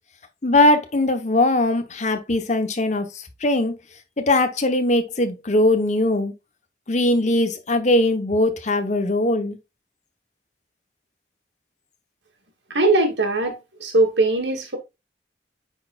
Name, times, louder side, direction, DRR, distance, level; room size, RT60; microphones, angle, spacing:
voice 1, 0.4-3.1 3.4-3.7 4.2-6.3 6.9-9.6, left 1 dB, 40° left, 1.0 m, -20 dB
voice 2, 12.7-14.8, right 2 dB, 80° right, 2.2 m, -20 dB
9.4 x 4.2 x 2.4 m
head